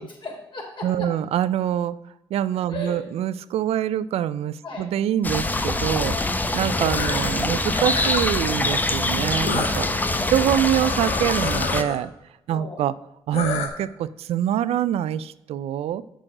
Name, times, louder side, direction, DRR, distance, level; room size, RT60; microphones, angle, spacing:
voice 1, 0.0-1.1 2.7-3.0 4.6-4.9 6.0-6.6 9.8-10.3 12.5-12.8, left 2 dB, 50° left, -1 dB, 3.4 m, -36 dB
voice 2, 0.8-2.0 2.3-6.1 6.5-9.9 10.3-12.1 12.5-12.9 13.3-16.0, right 11 dB, 75° right, 16 dB, 0.4 m, -25 dB
sound 1, 5.2-11.8, left 2 dB, 15° left, 0.7 m, -24 dB
sound 2, 6.5-7.3 7.7-8.3 9.4-12.0 13.3-13.7, left 5 dB, 80° left, 1.1 m, -30 dB
7.6 x 6.2 x 4.8 m, 0.92 s
supercardioid pair, 60°, 10 cm